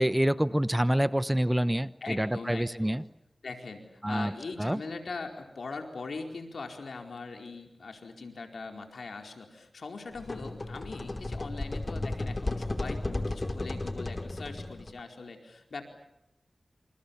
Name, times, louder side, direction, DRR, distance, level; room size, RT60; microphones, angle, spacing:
voice 1, 0.0-3.0 4.0-4.3 4.6-4.8, right 1 dB, 10° right, 15 dB, 1.0 m, -27 dB
voice 2, 2.0-3.0 3.4-15.8, left 3 dB, 90° left, 4 dB, 4.5 m, -41 dB
sound 1, 10.1-15.0, left 2 dB, 40° left, 2.8 m, -34 dB
28.0 x 28.0 x 7.1 m, 0.84 s
wide cardioid pair, 60°, 0 cm